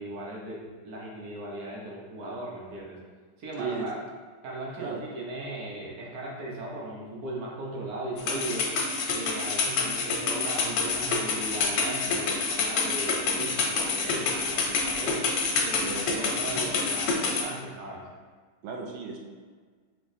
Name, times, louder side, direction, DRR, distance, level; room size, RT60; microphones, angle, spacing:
voice 1, 0.0-3.0 3.4-4.0 4.4-8.7 9.1-15.2 15.6-18.1, right 1 dB, 60° right, -3 dB, 1.0 m, -37 dB
sound 1, 8.2-17.4, left 4 dB, 85° left, 1.7 m, -27 dB
voice 2, 15.8-16.4 18.6-19.2, right 5 dB, 75° right, 0 dB, 1.3 m, -35 dB
6.1 x 3.1 x 2.7 m, 1.5 s
omnidirectional pair, 2.4 m